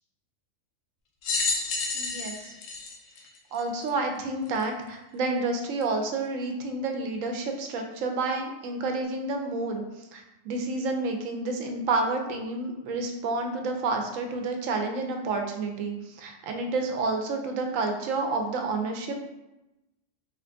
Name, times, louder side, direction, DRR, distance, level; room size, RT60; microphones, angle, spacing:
sound 1, 1.2-3.9 4.6-4.7 5.8-5.9, left 4 dB, 75° left, 1.0 m, -30 dB
voice 1, 1.9-2.5 3.5-9.8 10.1-19.2, right 3 dB, 80° right, 4 dB, 1.0 m, -29 dB
3.3 x 2.5 x 3.3 m, 0.95 s
omnidirectional pair, 1.4 m